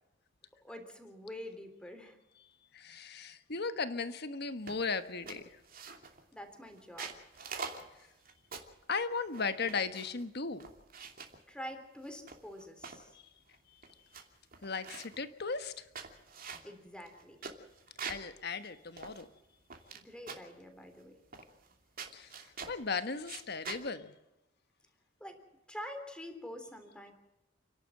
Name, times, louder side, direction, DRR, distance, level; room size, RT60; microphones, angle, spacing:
voice 1, 0.6-2.2 6.3-7.1 11.5-13.2 16.6-17.4 19.9-21.2 25.2-25.4 25.7-27.1, left 1 dB, 5° left, 3.4 m, -46 dB
voice 2, 2.7-5.4 8.9-10.7 14.6-15.8 18.1-19.3 22.1-22.3 22.7-24.1, left 4 dB, 60° left, 1.4 m, -36 dB
sound 1, 4.7-4.9 5.3-6.2 6.8-8.8 9.3-10.2 10.6-11.4 12.0-13.0 13.5-13.6 13.8-14.2 14.5-15.2 15.7-18.3 18.6-18.7 19.0-20.0 20.3-20.6 21.3-21.7 22.0-22.8 23.2-23.8, right 5 dB, 50° right, 2.8 m, -45 dB
30.0 x 11.5 x 7.7 m
head